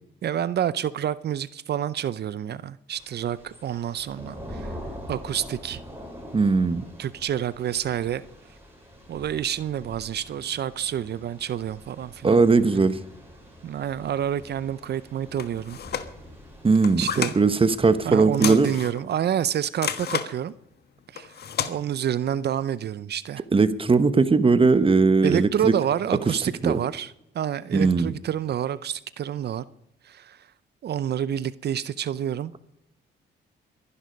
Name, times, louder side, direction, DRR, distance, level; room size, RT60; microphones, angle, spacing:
voice 1, 0.2-4.8 5.1-5.8 7.0-8.2 9.1-12.4 13.6-15.8 17.0-17.3 18.0-20.5 21.1-21.3 21.7-23.4 25.2-29.6 30.0-30.5 30.8-32.5, right 10 dB, 55° right, 0.6 m, -28 dB
Thunder / Rain, 2.9-18.9, equal, 10° right, 7.0 m, -44 dB
voice 2, 6.3-6.8 12.2-13.0 16.6-17.1 17.3-18.7 23.5-25.7 26.6-26.8 27.7-28.1, right 4 dB, 25° right, 1.1 m, -19 dB
sound 1, 15.4-16.1 16.7-17.4 18.3-19.0 19.8-20.3 21.2-21.7, left 8 dB, 55° left, 1.3 m, -31 dB
22.0 x 11.0 x 5.3 m
cardioid pair, 90°, 20 cm